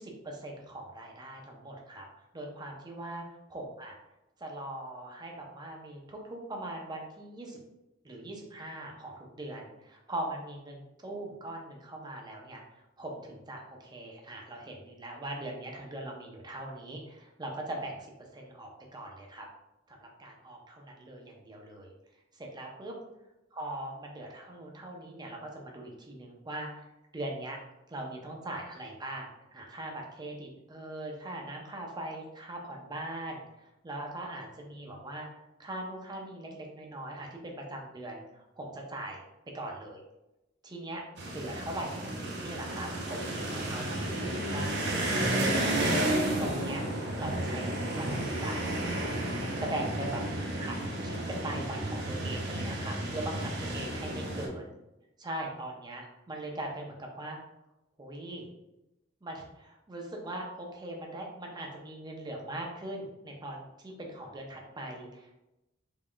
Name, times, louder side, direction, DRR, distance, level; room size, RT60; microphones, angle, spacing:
voice 1, 0.0-2.1 2.3-3.2 3.5-4.0 4.4-7.6 8.0-18.0 18.3-19.5 19.9-21.9 22.3-22.9 23.5-26.8 27.1-27.6 27.9-33.4 33.8-35.3 35.6-39.2 39.5-40.0 40.6-44.7 45.1-45.5 46.4-46.8 47.2-49.0 49.6-50.2 50.6-50.8 51.0-54.7 55.2-57.4 58.0-58.4 59.2-65.4, right 1 dB, 20° right, 0 dB, 0.6 m, -40 dB
sound 1, 41.2-54.5, right 1 dB, 60° right, 0.7 m, -32 dB
3.6 x 3.6 x 2.3 m, 0.94 s
head